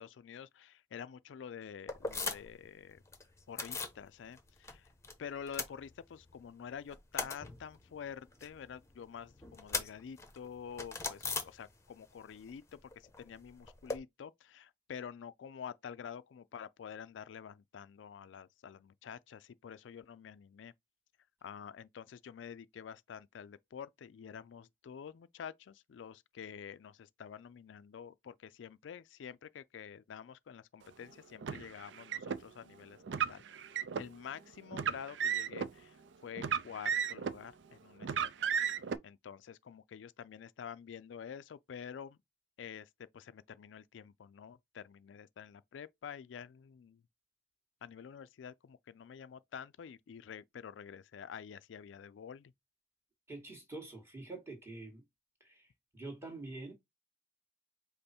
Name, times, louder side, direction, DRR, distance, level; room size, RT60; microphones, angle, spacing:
voice 1, 0.0-3.0 3.5-4.9 5.2-20.7 21.4-33.0 33.3-33.4 34.0-36.0 36.2-38.5 39.0-42.2 42.6-47.0 47.8-52.5, left 7 dB, 85° left, 0.4 m, -48 dB
sound 1, 1.9-2.7 2.9-4.0 4.3-5.1 5.4-6.4 6.7-12.1 12.4-14.0, left 4 dB, 15° left, 0.8 m, -41 dB
Car, 31.4-32.4 33.1-34.1 34.7-35.7 36.4-37.4 38.0-39.0, right 7 dB, 75° right, 0.4 m, -34 dB
voice 2, 53.3-55.0 55.4-55.6 55.9-56.7, right 2 dB, 15° right, 1.7 m, -46 dB
5.3 x 2.1 x 4.3 m
head